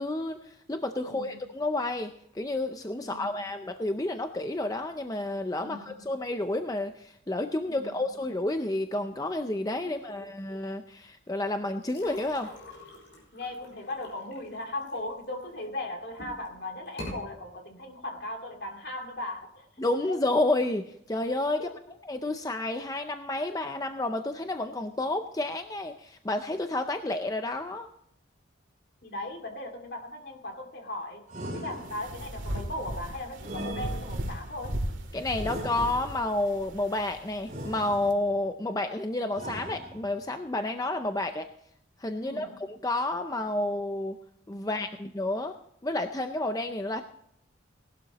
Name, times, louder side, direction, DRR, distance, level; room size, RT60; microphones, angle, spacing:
voice 1, 0.0-12.5 19.8-27.9 35.1-41.5 42.0-44.2 44.5-45.5 45.8-47.0, left 2 dB, 20° left, 7 dB, 0.5 m, -30 dB
voice 2, 1.0-1.5 3.0-3.4 5.6-6.0 7.7-7.9 9.8-10.3 13.3-19.7 21.6-21.7 29.0-31.3 31.5-34.8 42.2-42.6, left 1 dB, 55° left, 3 dB, 2.4 m, -38 dB
sound 1, 11.8-15.6 16.1-16.5 16.9-17.2, left 1 dB, 70° left, 5.6 m, -44 dB
sound 2, 31.3-32.3 33.4-34.5 35.4-36.3 37.5-38.4 39.3-40.3, right 1 dB, 40° right, 3.4 m, -40 dB
sound 3, 31.7-38.1, right 1 dB, 75° right, 2.0 m, -37 dB
18.5 x 12.0 x 3.0 m, 0.77 s
head